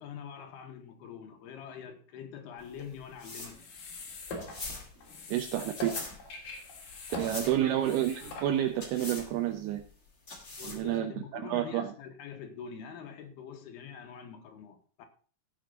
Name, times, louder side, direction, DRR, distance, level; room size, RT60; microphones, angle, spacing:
voice 1, 0.0-3.6 7.4-7.6 10.6-15.1, left 7 dB, 75° left, 3.6 m, -45 dB
sound 1, 2.6-11.0, left 3 dB, 25° left, 1.9 m, -44 dB
sound 2, 3.5-8.9, left 2 dB, 60° left, 4.4 m, -43 dB
voice 2, 5.3-6.0 7.2-9.8 10.6-11.9, right 11 dB, 80° right, 2.8 m, -30 dB
16.5 x 6.5 x 3.9 m
omnidirectional pair, 4.6 m